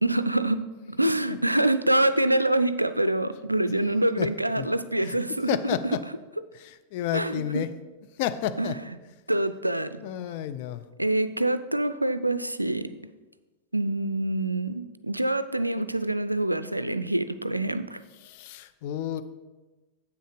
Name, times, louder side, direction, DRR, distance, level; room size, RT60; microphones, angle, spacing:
voice 1, 0.0-6.0 7.1-7.6 8.6-8.7 9.3-10.0 11.0-12.9 13.7-18.0, right 1 dB, 85° right, 12 dB, 0.3 m, -26 dB
voice 2, 1.0-1.4 4.2-4.3 4.6-4.7 5.0-5.2 5.5-6.0 6.5-7.7 8.2-8.8 10.0-10.9 18.2-19.2, left 11 dB, 50° left, 11 dB, 0.5 m, -31 dB
8.0 x 6.3 x 5.0 m, 1.2 s
figure-of-eight pair, 90°, 0 cm